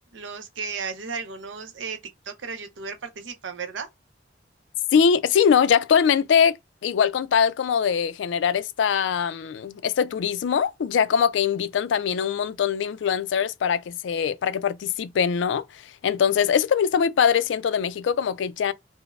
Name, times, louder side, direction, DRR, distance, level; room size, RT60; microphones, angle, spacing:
voice 1, 0.1-2.0 2.3-3.9, right 5 dB, 80° right, 0.6 m, -34 dB
voice 2, 4.9-6.6 6.8-15.6 16.0-18.7, left 7 dB, 75° left, 0.3 m, -22 dB
5.1 x 2.0 x 2.4 m
head